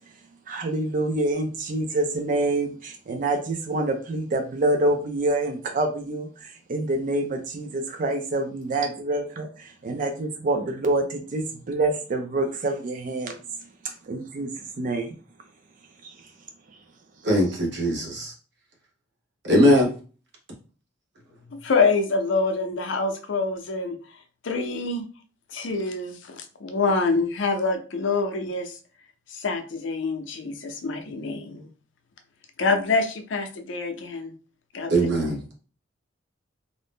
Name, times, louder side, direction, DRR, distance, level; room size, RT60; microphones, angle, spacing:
voice 1, 0.5-13.3 14.1-14.5 14.8-15.1, right 2 dB, 40° right, 5 dB, 0.4 m, -26 dB
voice 2, 17.2-18.3 19.4-19.9 34.9-35.5, equal, 60° right, 0 dB, 0.9 m, -20 dB
voice 3, 21.5-24.0 24.4-25.0 25.5-28.8 29.3-31.7 32.6-34.3 34.7-35.1, left 3 dB, 65° left, 6 dB, 0.5 m, -26 dB
2.6 x 2.0 x 3.4 m, 0.36 s
head